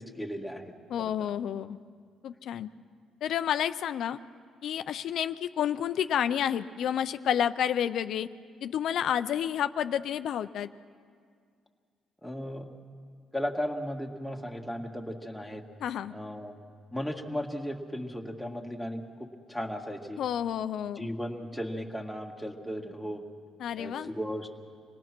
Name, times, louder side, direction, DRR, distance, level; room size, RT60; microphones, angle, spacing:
voice 1, 0.0-1.1 12.2-12.7 13.3-15.6 16.1-16.5 16.9-19.0 19.5-20.2 21.0-23.2 23.8-24.5, equal, ahead, 2 dB, 2.0 m, -36 dB
voice 2, 0.9-1.8 2.2-2.7 3.2-4.2 4.6-8.3 8.6-10.7 15.8-16.1 20.2-21.1 23.6-24.1, left 9 dB, 75° left, 11 dB, 0.5 m, -30 dB
26.5 x 18.5 x 6.1 m, 2.1 s
cardioid pair, 90°, 0 cm